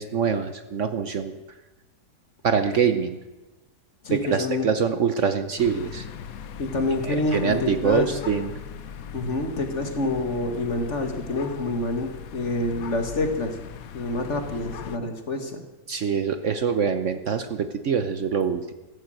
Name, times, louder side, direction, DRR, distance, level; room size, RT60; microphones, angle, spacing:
voice 1, 0.0-1.4 2.4-3.2 4.1-6.1 7.0-8.5 15.9-18.7, right 6 dB, 55° right, 9 dB, 1.0 m, -24 dB
voice 2, 4.0-4.7 6.6-8.1 9.1-13.6 13.9-15.6, left 2 dB, 45° left, 6 dB, 2.0 m, -27 dB
sound 1, 5.6-15.0, left 8 dB, 65° left, 1.2 m, -39 dB
14.5 x 12.0 x 7.7 m, 1.1 s
omnidirectional pair, 1.7 m